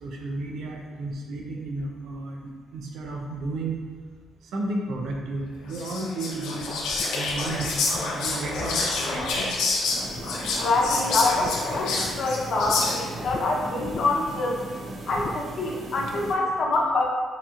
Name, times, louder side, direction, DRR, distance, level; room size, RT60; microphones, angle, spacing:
voice 1, 0.0-3.8 4.4-6.7 7.1-9.8, right 2 dB, 80° right, 0 dB, 0.7 m, -33 dB
Whispering, 5.7-13.2, left 3 dB, 90° left, 0.8 m, -28 dB
sound 1, 6.6-9.8 10.2-10.8 11.1-12.8 13.2-13.4 13.8-14.4 15.1-15.4, left 4 dB, 45° left, 0.3 m, -40 dB
sound 2, 9.9-16.4, right 2 dB, 45° right, 0.7 m, -38 dB
voice 2, 10.3-14.6 15.1-17.0, left 2 dB, 60° left, -3 dB, 0.8 m, -25 dB
6.7 x 3.1 x 2.5 m, 1.5 s
cardioid pair, 90°, 0 cm